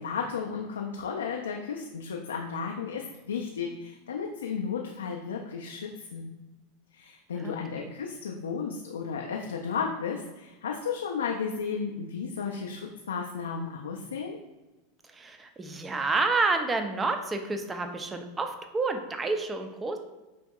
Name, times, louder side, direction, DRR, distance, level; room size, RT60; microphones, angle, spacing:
voice 1, 0.0-6.3 6.9-14.4, left 6 dB, 80° left, 1 dB, 0.4 m, -34 dB
voice 2, 7.3-7.9 15.1-20.0, right 3 dB, 20° right, 6 dB, 0.5 m, -29 dB
5.7 x 2.6 x 2.3 m, 1.1 s
hypercardioid pair, 90°, 0 cm